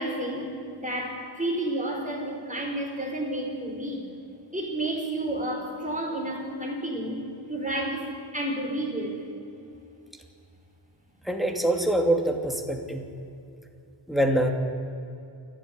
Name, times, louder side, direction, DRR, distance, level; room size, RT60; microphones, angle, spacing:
voice 1, 0.0-4.1 4.5-7.2 7.5-9.3, right 1 dB, 15° right, -1 dB, 5.3 m, -31 dB
voice 2, 11.2-13.0 14.1-14.5, right 1 dB, ahead, 3 dB, 2.7 m, -24 dB
29.0 x 12.0 x 9.8 m, 2.6 s
wide cardioid pair, 90°, 46 cm